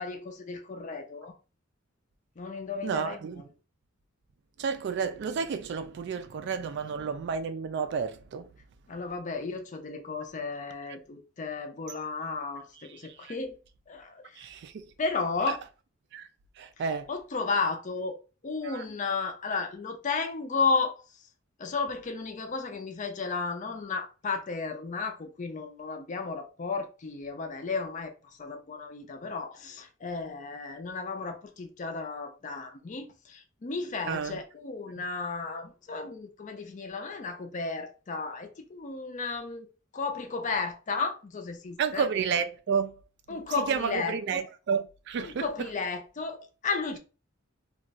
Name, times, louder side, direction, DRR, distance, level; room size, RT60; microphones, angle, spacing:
voice 1, 0.0-1.3 2.4-3.4 8.9-13.6 13.9-14.5 15.0-15.6 17.1-18.2 18.4-21.0 21.6-39.7 39.9-42.1 43.3-44.4 45.2-47.0, left 4 dB, 40° left, 0.5 m, -33 dB
voice 2, 2.8-3.5 4.6-8.5 13.0-13.3 14.4-14.9 15.5-15.6 16.1-16.3 16.6-17.1 18.6-18.8 34.1-34.4 41.8-43.0 43.3-45.5, right 6 dB, 55° right, 0.3 m, -31 dB
2.4 x 2.3 x 3.9 m
head